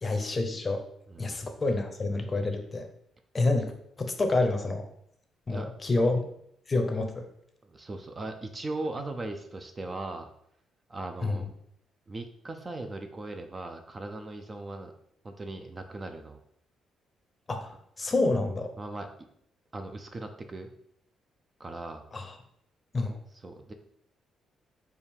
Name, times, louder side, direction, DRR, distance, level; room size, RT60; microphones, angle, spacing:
voice 1, 0.0-0.8 1.2-2.9 3.3-3.7 4.0-4.8 5.5-6.2 6.7-7.2 11.2-11.4 17.5-17.7 18.0-18.7 22.1-22.3 22.9-23.2, left 2 dB, 30° left, 6 dB, 0.6 m, -28 dB
voice 2, 1.1-1.5 5.5-5.7 7.6-10.3 10.9-11.5 12.1-14.9 15.2-16.4 18.8-19.1 19.7-20.7 21.6-22.0 23.3-23.7, right 2 dB, 30° right, 6 dB, 0.4 m, -38 dB
3.4 x 2.3 x 4.4 m, 0.71 s
cardioid pair, 90°, 0 cm